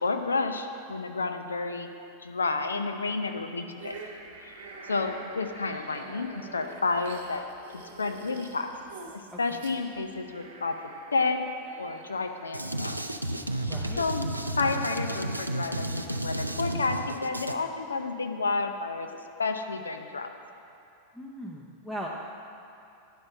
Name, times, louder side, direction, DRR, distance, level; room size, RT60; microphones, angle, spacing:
voice 1, 0.0-1.9 2.2-4.0 4.4-4.5 4.9-7.4 7.7-8.7 9.1-11.5 11.8-13.0 14.0-14.2 14.6-19.1 19.4-20.3, left 3 dB, 75° left, 6 dB, 0.5 m, -30 dB
sound 1, 3.8-13.0, right 3 dB, 55° right, 1.1 m, -47 dB
voice 2, 9.3-9.6 13.7-14.1 21.1-22.1, equal, 5° left, -3 dB, 0.6 m, -39 dB
Drum kit, 12.5-17.5, right 1 dB, 85° right, 0.4 m, -32 dB
10.5 x 5.4 x 5.6 m, 2.6 s
figure-of-eight pair, 90°, 0 cm